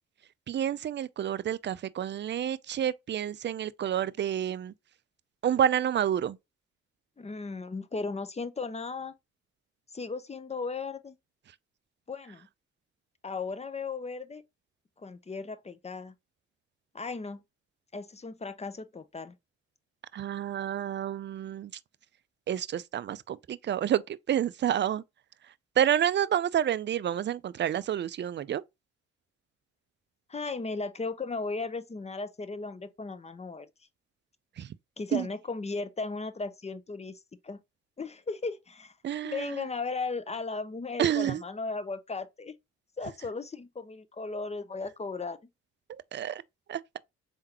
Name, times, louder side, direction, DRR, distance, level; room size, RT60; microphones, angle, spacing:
voice 1, 0.5-4.7 5.4-6.4 20.1-21.7 22.5-25.0 25.8-28.6 34.6-34.7 35.1-35.3 39.0-39.5 41.0-41.4 45.9-46.4 46.7-47.0, right 10 dB, 35° right, 0.4 m, -29 dB
voice 2, 7.2-9.1 9.9-11.2 12.1-12.5 13.2-14.4 15.0-16.1 16.9-17.4 17.9-19.3 30.3-33.7 35.0-37.6 38.0-38.9 39.2-42.6 43.0-45.4, left 4 dB, 20° left, 0.6 m, -36 dB
4.4 x 3.7 x 2.9 m
supercardioid pair, 55°, 31 cm